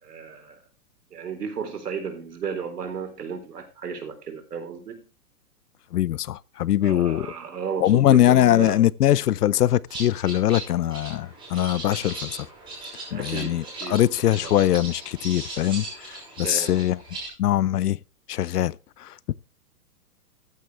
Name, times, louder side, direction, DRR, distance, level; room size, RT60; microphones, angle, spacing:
voice 1, 0.0-0.6 1.1-5.0 6.8-8.8 13.1-14.1 14.4-14.5 16.4-16.8, right 6 dB, 80° right, 4.1 m, -34 dB
voice 2, 5.9-7.3 7.8-12.4 13.1-17.0 17.4-18.0 18.3-19.3, left 12 dB, 80° left, 0.7 m, -22 dB
sound 1, 9.9-17.3, right 2 dB, 10° right, 5.8 m, -38 dB
14.5 x 9.7 x 3.4 m
hypercardioid pair, 160°, 46 cm